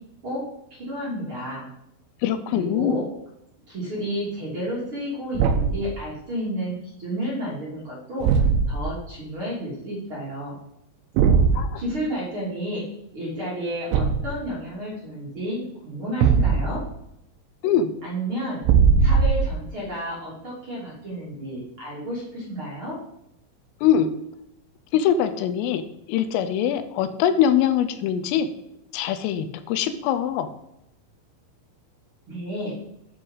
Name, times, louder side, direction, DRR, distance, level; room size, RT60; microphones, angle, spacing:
voice 1, 0.8-1.6 2.5-3.0 3.7-8.3 8.7-10.5 11.7-12.8 13.1-16.8 18.0-18.6 19.0-23.0 32.3-32.7, equal, 30° right, -6 dB, 2.8 m, -31 dB
voice 2, 2.2-3.0 11.5-11.8 17.6-17.9 23.8-24.1 24.9-25.8 26.1-28.5 28.9-30.5, left 9 dB, 85° left, 10 dB, 3.3 m, -22 dB
Thump thud, 5.3-5.9 8.2-8.9 11.2-11.6 13.9-14.4 16.2-16.8 18.6-19.6, right 6 dB, 80° right, 3.1 m, -19 dB
8.1 x 7.8 x 5.6 m, 0.81 s
omnidirectional pair, 5.9 m